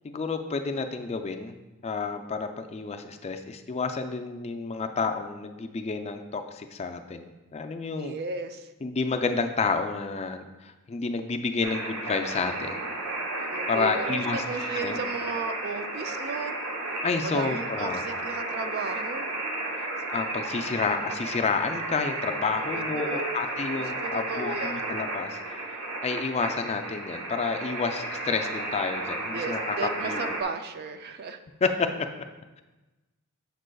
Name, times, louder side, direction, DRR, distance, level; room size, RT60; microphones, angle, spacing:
voice 1, 0.0-1.5 1.8-8.1 8.8-12.8 13.4-14.4 14.8-15.0 17.0-18.0 20.1-25.4 26.0-29.8 30.0-30.2 31.6-32.1, left 4 dB, 30° left, 6 dB, 0.3 m, -30 dB
voice 2, 8.0-8.7 13.5-16.5 17.2-19.3 22.7-23.3 23.8-24.9 29.3-31.4, right 4 dB, 45° right, 7 dB, 0.4 m, -35 dB
sound 1, 11.6-30.4, right 2 dB, 85° right, 0.9 m, -33 dB
7.9 x 6.3 x 2.3 m, 1.1 s
head